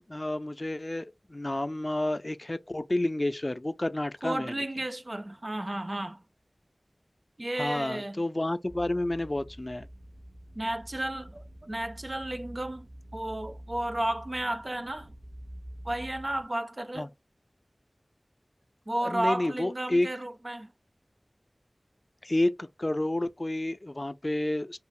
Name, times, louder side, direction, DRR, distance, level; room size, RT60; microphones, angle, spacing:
voice 1, 0.0-4.5 7.6-9.9 17.0-17.1 19.0-20.1 22.2-24.8, left 1 dB, 40° left, 0.3 m, -30 dB
voice 2, 4.2-6.2 7.4-8.2 10.5-15.1 15.8-17.1 18.9-20.7, right 1 dB, 45° right, 0.4 m, -33 dB
sound 1, 8.7-16.5, equal, 80° right, 1.1 m, -47 dB
3.0 x 2.0 x 2.5 m
wide cardioid pair, 40°, 0 cm